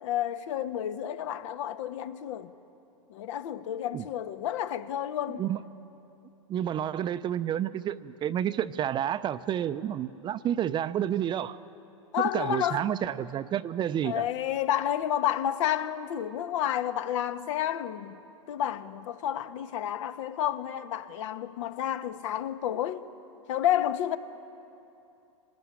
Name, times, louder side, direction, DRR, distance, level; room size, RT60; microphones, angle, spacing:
voice 1, 0.0-2.5 3.1-5.4 12.1-12.9 14.0-18.2 18.5-23.1 23.5-24.2, left 11 dB, 60° left, 1.3 m, -30 dB
voice 2, 6.5-11.6 12.3-14.3, right 10 dB, 25° right, 0.6 m, -30 dB
25.5 x 18.5 x 9.8 m
hypercardioid pair, 115°, 18 cm